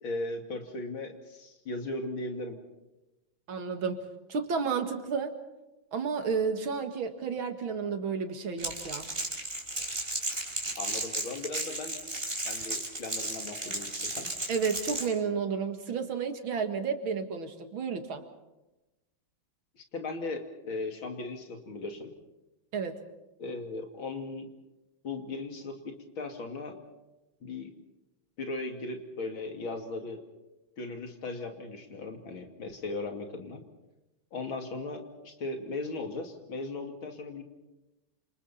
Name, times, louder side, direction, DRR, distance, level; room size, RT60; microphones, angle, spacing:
voice 1, 0.0-2.6 10.8-12.0 12.4-14.3 19.8-22.1 23.4-24.5 25.0-26.8 27.4-27.7 28.4-30.3 30.8-33.6 34.3-37.4, left 2 dB, 85° left, 4 dB, 3.4 m, -37 dB
voice 2, 3.5-4.0 4.3-5.4 5.9-9.1 14.5-18.2 22.7-23.0, right 5 dB, 90° right, 6 dB, 2.8 m, -31 dB
Crackle, 8.6-15.1, right 2 dB, 30° right, 4.0 m, -34 dB
28.5 x 27.5 x 4.3 m, 1.0 s
omnidirectional pair, 2.1 m